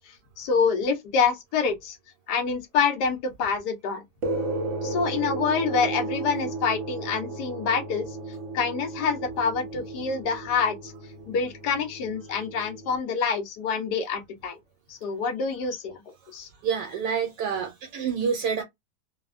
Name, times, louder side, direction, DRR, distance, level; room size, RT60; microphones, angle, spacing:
voice 1, 0.1-2.0 2.3-4.0 4.8-8.1 8.5-10.9 11.3-14.6 14.9-16.0 16.3-16.5, left 5 dB, 70° left, 1.3 m, -26 dB
sound 1, 4.2-13.0, right 3 dB, 65° right, 0.8 m, -34 dB
voice 2, 16.6-18.6, right 6 dB, 80° right, 1.2 m, -28 dB
3.2 x 2.1 x 2.4 m
omnidirectional pair, 1.9 m